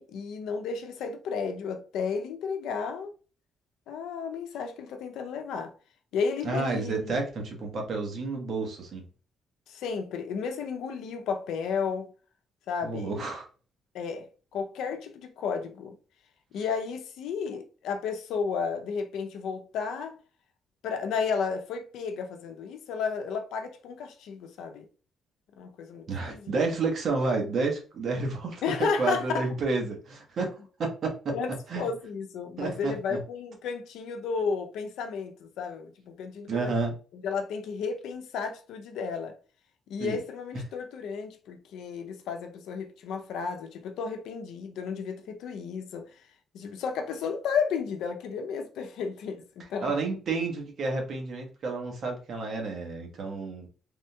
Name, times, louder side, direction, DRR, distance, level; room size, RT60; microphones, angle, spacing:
voice 1, 0.0-3.1 3.9-5.7 6.1-7.2 9.7-12.1 12.7-13.3 13.9-16.0 16.5-20.2 20.8-24.9 25.6-26.5 28.6-29.5 31.3-36.7 37.1-39.3 39.9-46.1 46.5-49.9, left 5 dB, 85° left, 0.5 m, -33 dB
voice 2, 6.4-9.0 12.8-13.5 26.1-31.3 31.7-31.8 32.6-33.2 36.5-36.9 40.0-40.2 49.8-53.7, right 3 dB, 60° right, 1.1 m, -30 dB
3.5 x 2.7 x 2.3 m
cardioid pair, 90°, 0 cm